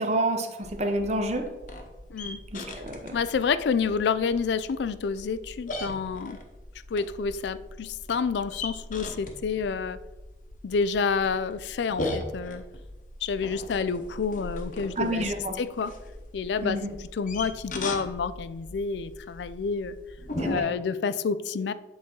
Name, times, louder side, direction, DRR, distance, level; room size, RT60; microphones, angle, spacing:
voice 1, 0.0-1.5 2.5-3.1 15.0-15.5 16.6-16.9 20.4-20.7, right 1 dB, 35° right, 5 dB, 0.7 m, -29 dB
sound 1, 0.6-20.6, left 1 dB, 45° left, 0.9 m, -39 dB
voice 2, 2.1-2.4 3.1-6.4 6.9-10.0 10.6-12.6 13.2-15.2 15.6-15.9 16.3-16.8 17.1-20.0 20.4-21.7, left 5 dB, 75° left, 15 dB, 0.4 m, -28 dB
8.5 x 4.3 x 3.8 m, 1.1 s
head